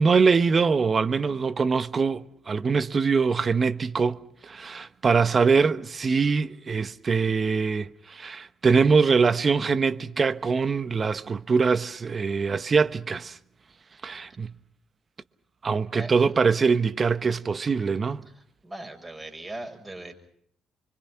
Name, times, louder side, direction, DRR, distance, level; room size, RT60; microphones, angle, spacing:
voice 1, 0.0-4.2 4.4-13.4 14.0-14.5 15.6-18.2, right 5 dB, 40° right, 1.1 m, -23 dB
voice 2, 18.3-20.1, right 1 dB, 20° right, 6.5 m, -39 dB
26.5 x 24.0 x 5.8 m
hypercardioid pair, 50°, 0 cm